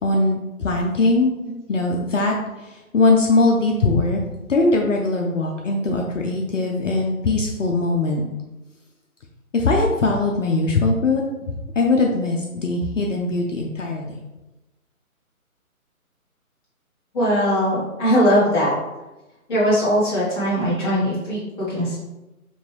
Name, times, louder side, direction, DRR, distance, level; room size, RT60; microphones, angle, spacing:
voice 1, 0.0-1.3 1.7-4.2 4.5-8.3 9.5-14.2, left 3 dB, 60° left, 0 dB, 0.7 m, -21 dB
voice 2, 17.1-18.7 19.5-22.0, equal, 15° left, -9 dB, 1.2 m, -20 dB
5.3 x 2.5 x 3.0 m, 1.0 s
figure-of-eight pair, 145°, 43 cm